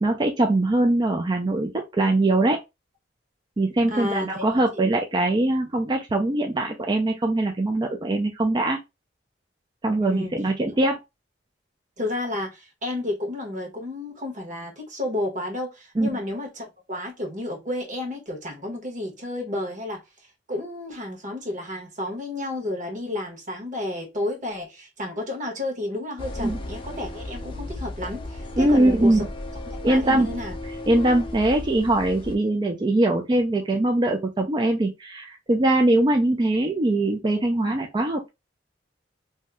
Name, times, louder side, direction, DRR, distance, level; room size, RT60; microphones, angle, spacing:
voice 1, 0.0-2.6 3.6-8.8 9.8-11.0 16.0-16.1 26.4-26.6 28.6-29.3 29.8-30.3 30.9-38.3, right 1 dB, 25° right, 0.4 m, -22 dB
voice 2, 3.9-4.6 10.0-10.3 12.0-20.0 20.5-29.2 29.7-30.5, left 1 dB, 45° right, 1.2 m, -31 dB
sound 1, 26.2-32.4, left 1 dB, 30° left, 0.5 m, -35 dB
2.7 x 2.1 x 3.4 m
head